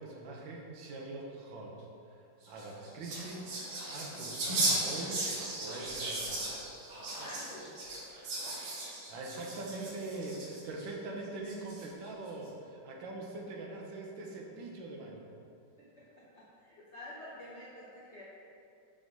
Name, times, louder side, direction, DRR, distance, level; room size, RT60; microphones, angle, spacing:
voice 1, 0.0-1.8 2.1-3.4 3.9-5.2 5.6-6.5 9.1-15.3, right 2 dB, 70° right, 0 dB, 1.4 m, -43 dB
sound 1, 2.4-10.8 11.4-12.1, right 2 dB, 90° right, 2.1 m, -36 dB
voice 2, 7.2-7.8 16.0-18.2, left 1 dB, 75° left, -7 dB, 0.6 m, -49 dB
5.3 x 3.6 x 5.3 m, 2.6 s
omnidirectional pair, 2.4 m